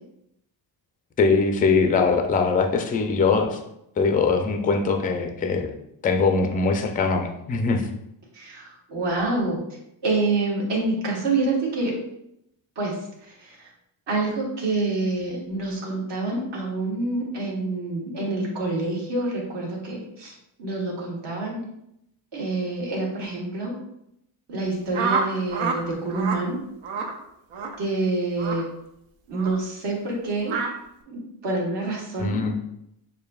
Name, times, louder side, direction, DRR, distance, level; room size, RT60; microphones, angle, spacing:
voice 1, 1.2-3.6 4.0-5.7 6.0-7.9 32.2-32.6, left 4 dB, 20° left, 4 dB, 0.3 m, -22 dB
voice 2, 8.3-9.6 10.0-11.9 12.7-13.0 13.2-13.7 14.1-21.6 22.3-23.7 24.5-26.6 27.8-28.6 29.3-30.5 31.1-32.4, right 2 dB, 60° right, -3 dB, 1.5 m, -27 dB
sound 1, 24.9-25.8 26.1-26.4 26.8-27.1 27.5-27.8 28.4-28.6 29.3-29.6 30.4-30.7, right 5 dB, 80° right, 0.8 m, -27 dB
6.6 x 2.6 x 2.3 m, 0.79 s
cardioid pair, 135°, 48 cm